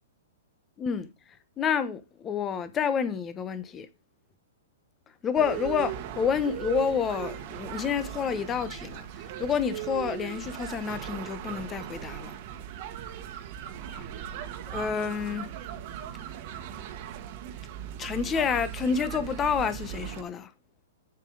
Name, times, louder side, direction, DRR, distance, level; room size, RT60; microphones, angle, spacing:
voice 1, 0.8-1.1 1.6-3.9 5.2-12.3 13.9-14.1 14.7-15.5 18.0-20.5, left 7 dB, 15° left, 1.0 m, -29 dB
sound 1, 5.3-20.2, right 10 dB, 40° right, 1.5 m, -38 dB
8.3 x 7.5 x 4.8 m
hypercardioid pair, 155°, 0 cm